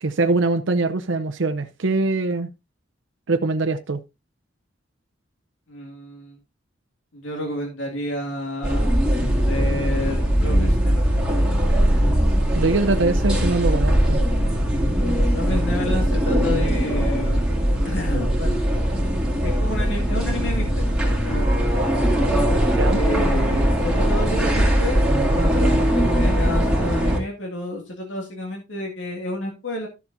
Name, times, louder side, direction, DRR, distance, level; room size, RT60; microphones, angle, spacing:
voice 1, 0.0-2.5 3.3-4.0 12.6-14.2 22.8-23.0, right 3 dB, 85° right, 0.7 m, -22 dB
voice 2, 5.7-6.4 7.1-8.9 9.4-11.2 15.3-17.5 17.9-18.6 18.9-19.0 19.4-20.9 21.2-21.7 22.9-29.9, left 1 dB, 90° left, 2.2 m, -30 dB
sound 1, 8.6-27.2, equal, 5° right, 2.5 m, -20 dB
13.0 x 7.2 x 2.6 m
head